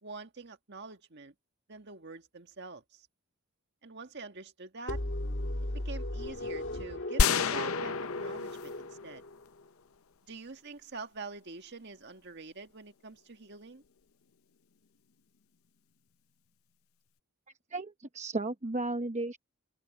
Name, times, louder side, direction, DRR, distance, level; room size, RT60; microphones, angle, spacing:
voice 1, 0.0-1.3 1.7-3.1 3.8-5.0 5.9-9.2 10.3-13.8, right 4 dB, 55° right, 1.7 m, -45 dB
sound 1, 4.9-9.6, left 1 dB, 60° left, 1.8 m, -36 dB
sound 2, 7.2-9.5, left 6 dB, 80° left, 0.6 m, -30 dB
voice 2, 17.7-19.4, right 2 dB, 35° right, 0.9 m, -34 dB
open air
head